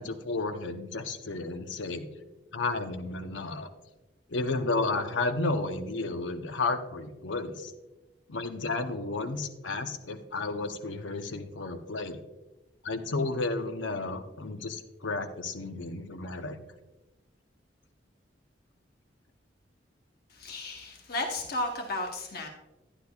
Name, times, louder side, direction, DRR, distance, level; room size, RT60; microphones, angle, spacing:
voice 1, 0.0-2.1 2.5-3.7 4.3-7.7 8.3-12.2 12.8-16.6, left 3 dB, 85° left, 7 dB, 0.8 m, -32 dB
voice 2, 20.3-22.5, left 2 dB, 55° left, 2 dB, 0.9 m, -34 dB
11.5 x 10.0 x 2.3 m, 1.1 s
head